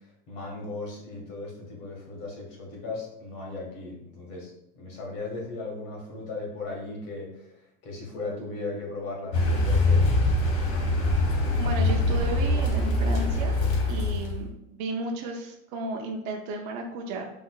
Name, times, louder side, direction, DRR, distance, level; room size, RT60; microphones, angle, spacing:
voice 1, 0.0-10.1, left 3 dB, 50° left, -1 dB, 1.7 m, -37 dB
Car, 9.3-14.5, left 2 dB, 65° left, 1.7 m, -23 dB
voice 2, 11.6-13.5 13.9-17.3, right 2 dB, 55° right, 1 dB, 0.7 m, -34 dB
6.3 x 3.4 x 2.4 m, 0.83 s
cardioid pair, 180°, 31 cm